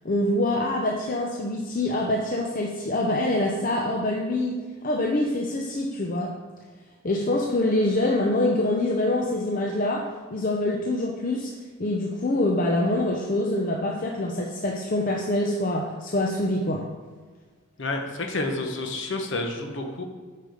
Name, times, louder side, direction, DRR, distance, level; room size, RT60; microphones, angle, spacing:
voice 1, 0.0-6.4 7.0-11.5 11.8-16.9, left 1 dB, 40° left, 0 dB, 0.6 m, -25 dB
voice 2, 17.8-20.0, left 2 dB, 60° left, 4 dB, 1.1 m, -29 dB
8.5 x 5.0 x 5.2 m, 1.4 s
head